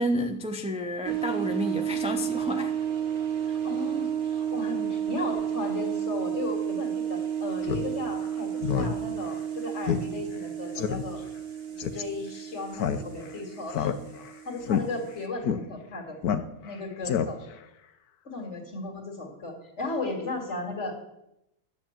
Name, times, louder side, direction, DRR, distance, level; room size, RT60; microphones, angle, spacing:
voice 1, 0.0-2.7, equal, 5° right, 5 dB, 0.5 m, -30 dB
sound 1, 1.1-15.3, right 9 dB, 50° right, 1.3 m, -32 dB
voice 2, 3.6-11.2 11.9-13.9 14.4-16.2 16.6-17.4 18.2-21.0, left 2 dB, 50° left, 2 dB, 2.7 m, -35 dB
Speech synthesizer, 7.6-7.9 8.2-8.3 8.6-8.9 9.3-9.4 9.9-10.0 10.3-10.4 10.8-11.0 11.8-12.0 12.7-13.3 13.7-14.3 14.6-14.8 15.4-15.6 16.2-16.7 17.0-17.6, left 8 dB, 85° left, 1.3 m, -27 dB
11.5 x 7.7 x 7.4 m, 0.83 s
omnidirectional pair, 1.6 m